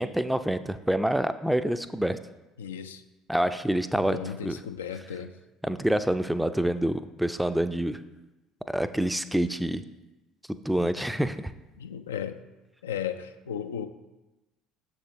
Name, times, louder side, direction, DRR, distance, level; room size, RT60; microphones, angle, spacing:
voice 1, 0.0-2.2 3.3-4.2 4.4-4.6 5.6-8.0 8.7-9.8 10.6-11.5, right 1 dB, 5° right, 11 dB, 0.4 m, -27 dB
voice 2, 2.6-3.0 4.1-5.3 11.8-12.4 12.8-13.9, left 8 dB, 80° left, 9 dB, 0.3 m, -35 dB
7.2 x 6.7 x 3.0 m, 1.1 s
figure-of-eight pair, 60°, 0 cm